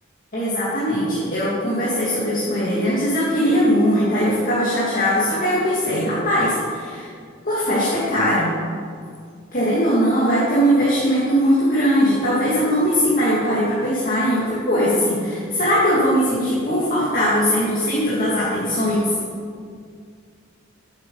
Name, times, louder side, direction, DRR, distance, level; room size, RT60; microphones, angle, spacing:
voice 1, 0.3-7.1 7.4-8.5 9.5-19.1, equal, 45° left, -8 dB, 1.8 m, -20 dB
8.2 x 7.5 x 5.3 m, 2.1 s
head